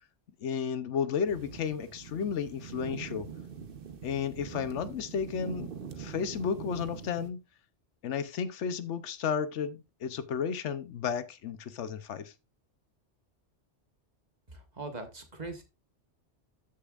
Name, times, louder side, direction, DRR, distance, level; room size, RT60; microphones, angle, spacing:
voice 1, 0.4-3.3 4.0-5.7 6.0-7.4 8.0-12.3, left 7 dB, 80° left, 1.0 m, -33 dB
sound 1, 1.3-7.3, right 6 dB, 50° right, 1.0 m, -43 dB
voice 2, 14.5-15.6, right 2 dB, 35° right, 1.4 m, -41 dB
13.5 x 6.6 x 2.4 m
omnidirectional pair, 1.2 m